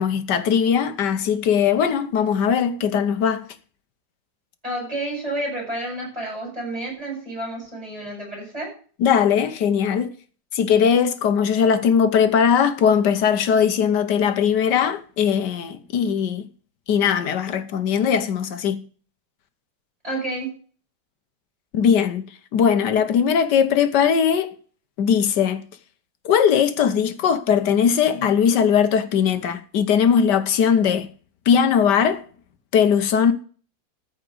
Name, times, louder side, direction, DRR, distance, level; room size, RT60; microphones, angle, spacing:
voice 1, 0.0-3.5 9.0-10.1 10.5-16.5 16.9-18.8 21.7-22.2 22.5-24.5 25.0-25.6 26.2-31.1 31.5-32.2 32.7-33.3, left 7 dB, 65° left, 1.4 m, -19 dB
voice 2, 4.6-8.7 20.0-20.5, right 1 dB, 15° right, 7.7 m, -30 dB
14.0 x 5.0 x 7.7 m
omnidirectional pair, 2.1 m